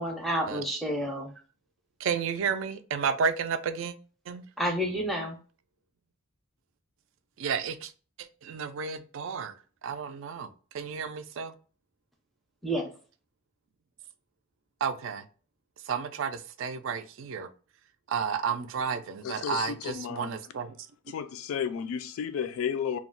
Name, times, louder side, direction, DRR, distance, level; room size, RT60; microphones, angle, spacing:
voice 1, 0.0-1.3 4.6-5.4 12.6-12.9, equal, ahead, 0.5 m, -30 dB
voice 2, 2.0-3.9 4.3-4.4 7.4-7.9 8.4-9.5 9.8-10.5 10.7-11.5 14.8-15.2 15.9-17.5 18.1-20.8, right 6 dB, 65° right, 0.3 m, -31 dB
voice 3, 19.2-20.4 21.1-23.0, left 7 dB, 75° left, 0.3 m, -33 dB
2.3 x 2.0 x 3.7 m
head